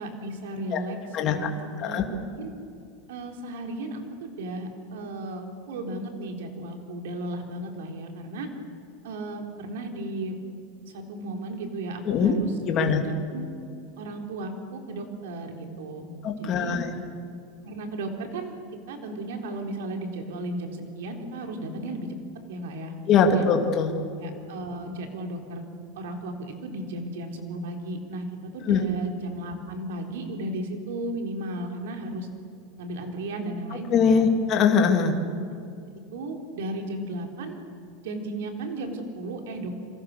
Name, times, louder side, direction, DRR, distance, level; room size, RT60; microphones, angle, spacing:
voice 1, 0.0-1.5 1.8-2.5 3.1-8.5 9.0-10.4 10.9-13.5 14.0-16.8 17.6-18.5 18.9-22.2 22.5-23.4 24.2-25.6 26.0-32.3 32.8-34.3 36.1-37.6 38.0-39.7, right 1 dB, 85° right, 3 dB, 4.0 m, -35 dB
voice 2, 1.1-1.5 1.8-2.1 12.0-12.3 12.7-13.0 16.2-16.9 23.1-23.9 28.7-28.8 33.9-35.1, left 6 dB, 25° left, 3 dB, 2.3 m, -21 dB
28.5 x 25.0 x 6.8 m, 2.4 s
supercardioid pair, 175°, 0 cm